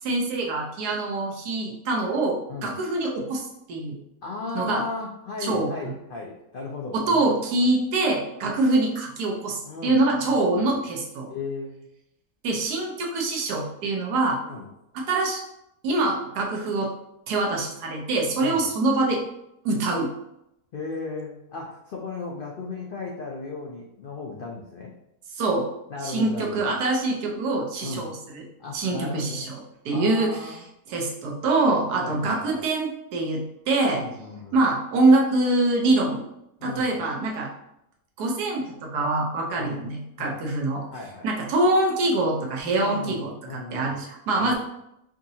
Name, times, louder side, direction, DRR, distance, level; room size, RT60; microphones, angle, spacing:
voice 1, 0.0-4.0 4.5-4.8 5.4-5.7 6.9-11.3 12.4-14.4 14.9-15.4 15.8-16.9 17.3-19.2 19.6-20.1 25.3-25.7 26.0-28.4 28.7-30.6 30.9-34.0 34.5-36.2 36.6-37.5 38.2-40.9 41.2-44.5, right 2 dB, 85° right, 0 dB, 1.3 m, -24 dB
voice 2, 4.2-7.3 8.4-8.5 9.6-10.4 11.3-11.8 14.4-14.7 18.4-18.6 20.7-24.9 25.9-26.7 27.8-28.1 28.6-29.5 29.9-30.6 32.0-32.6 33.9-34.6 36.6-36.9 39.6-39.8 40.2-40.4 40.9-41.3 42.8-44.0 44.4-44.5, left 4 dB, 80° left, -2 dB, 0.4 m, -36 dB
5.0 x 2.7 x 2.7 m, 0.82 s
omnidirectional pair, 1.6 m